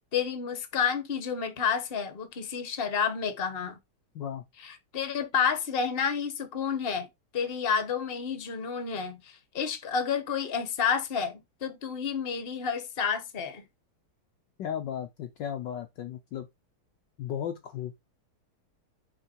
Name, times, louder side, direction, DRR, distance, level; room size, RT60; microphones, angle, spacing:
voice 1, 0.1-3.8 4.6-7.1 7.3-13.6, left 6 dB, 30° left, 1.3 m, -30 dB
voice 2, 14.6-16.5 17.2-18.0, left 9 dB, 65° left, 1.3 m, -35 dB
6.3 x 5.2 x 4.5 m
omnidirectional pair, 2.3 m